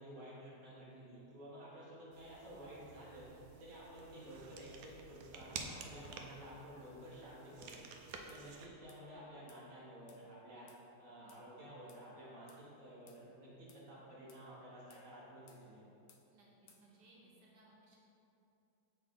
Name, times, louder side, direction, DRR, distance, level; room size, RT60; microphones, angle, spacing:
voice 1, 0.0-3.3 3.6-7.9 8.3-10.7 11.0-15.8, right 1 dB, 55° right, -8 dB, 1.8 m, -52 dB
sound 1, 2.1-8.7, right 4 dB, 70° right, 1.0 m, -51 dB
sound 2, 7.7-7.8 8.3-8.4 8.9-9.0 9.5-9.6 10.1-10.2 10.7-10.8 11.3-11.4 11.9-12.0 12.5-12.6 13.1-13.2 13.7-13.9 14.3-14.5 14.9-15.1 15.5-15.6 16.1-16.2 16.7-16.8, left 8 dB, 75° left, 1.1 m, -65 dB
voice 2, 16.8-18.0, right 2 dB, 90° right, -4 dB, 1.7 m, -64 dB
7.2 x 4.0 x 3.8 m, 2.8 s
omnidirectional pair, 1.7 m